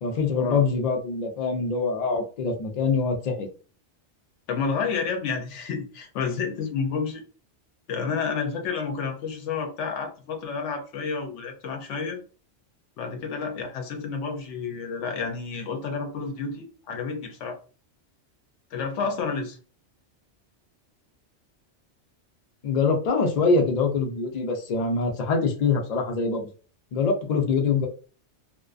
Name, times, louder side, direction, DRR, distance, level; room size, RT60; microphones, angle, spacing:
voice 1, 0.0-3.5 22.6-26.5 26.9-27.9, left 4 dB, 50° left, 2 dB, 0.5 m, -24 dB
voice 2, 4.5-7.2 7.9-12.2 13.0-17.6 18.7-19.6, left 5 dB, 80° left, 4 dB, 0.9 m, -30 dB
2.4 x 2.2 x 2.4 m, 0.38 s
omnidirectional pair, 1.2 m